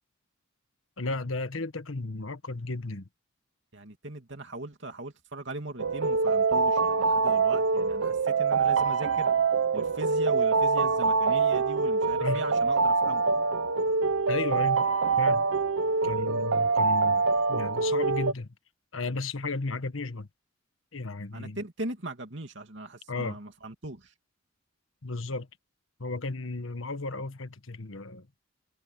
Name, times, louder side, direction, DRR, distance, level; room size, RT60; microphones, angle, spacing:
voice 1, 1.0-3.1 12.2-12.4 14.3-14.8 15.2-15.4 16.0-17.2 17.5-18.5 18.9-20.3 20.9-21.6 23.1-23.4 25.0-25.5 26.0-28.3, left 3 dB, 80° left, 1.5 m, -34 dB
voice 2, 3.7-9.3 9.7-13.2 21.3-24.1, right 1 dB, 60° right, 2.9 m, -39 dB
sound 1, 5.8-18.3, right 4 dB, 80° right, 0.9 m, -25 dB
head